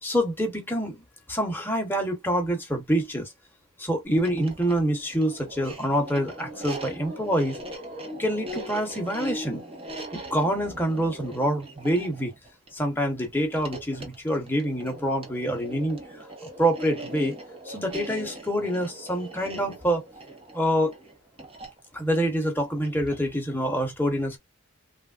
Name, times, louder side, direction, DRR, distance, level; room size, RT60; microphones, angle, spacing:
voice 1, 0.0-1.0 1.3-3.3 3.8-7.6 8.2-9.6 10.1-12.3 12.7-16.0 16.6-17.3 17.6-20.0 20.5-21.0 21.9-24.4, equal, 10° left, 1.0 m, -26 dB
sound 1, 4.1-23.3, right 1 dB, 25° right, 0.9 m, -40 dB
3.3 x 2.4 x 2.4 m
head